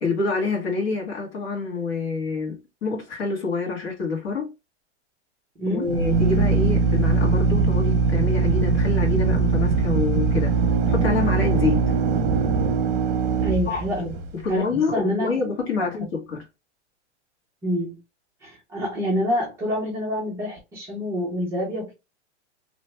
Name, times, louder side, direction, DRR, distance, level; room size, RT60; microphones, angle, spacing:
voice 1, 0.0-4.5 5.7-10.5 10.9-11.8 13.7-14.0 14.4-16.4, left 4 dB, 60° left, 1.6 m, -27 dB
voice 2, 5.6-5.9 13.4-14.2 14.5-14.7 14.9-15.3 15.8-15.9 17.6-18.0 18.4-21.9, equal, 10° right, 0.5 m, -27 dB
Drill, 5.8-14.5, right 4 dB, 50° right, 0.7 m, -21 dB
3.0 x 2.2 x 3.0 m
supercardioid pair, 165°, 35 cm